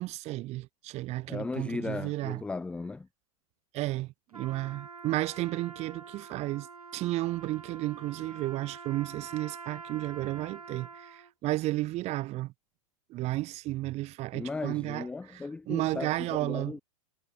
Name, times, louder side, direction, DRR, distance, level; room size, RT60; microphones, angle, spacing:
voice 1, 0.0-2.4 3.7-6.7 6.9-12.5 13.1-15.1 15.3-15.4 15.7-16.7, right 18 dB, 35° right, 1.4 m, -33 dB
voice 2, 1.3-3.1 14.3-16.8, left 3 dB, 5° left, 0.4 m, -36 dB
Trumpet, 4.3-11.3, right 5 dB, 90° right, 1.2 m, -46 dB
figure-of-eight pair, 95°, 18 cm